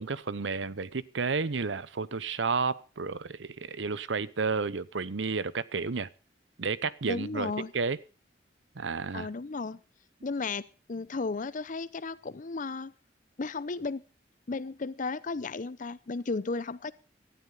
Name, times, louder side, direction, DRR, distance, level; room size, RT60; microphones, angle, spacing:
voice 1, 0.0-6.1 6.6-8.0 8.8-9.3, right 4 dB, 85° right, 0.8 m, -31 dB
voice 2, 7.1-7.7 9.1-9.8 10.2-10.6 10.9-12.9 13.4-14.0 14.5-16.9, left 3 dB, 45° left, 0.6 m, -34 dB
17.5 x 13.0 x 3.9 m
head